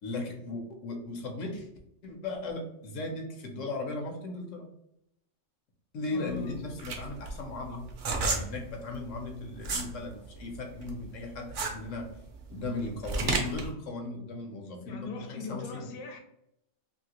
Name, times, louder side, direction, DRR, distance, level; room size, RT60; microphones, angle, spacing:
voice 1, 0.0-1.7 2.0-4.7 5.9-7.8 8.2-12.1 12.5-15.9, left 2 dB, 80° left, 3 dB, 1.1 m, -37 dB
voice 2, 6.1-6.7 14.9-16.2, left 5 dB, 60° left, 3 dB, 0.7 m, -39 dB
sound 1, 6.3-9.9 10.3-13.7, right 3 dB, 55° right, 0.6 m, -32 dB
2.8 x 2.7 x 2.9 m, 0.78 s
omnidirectional pair, 1.3 m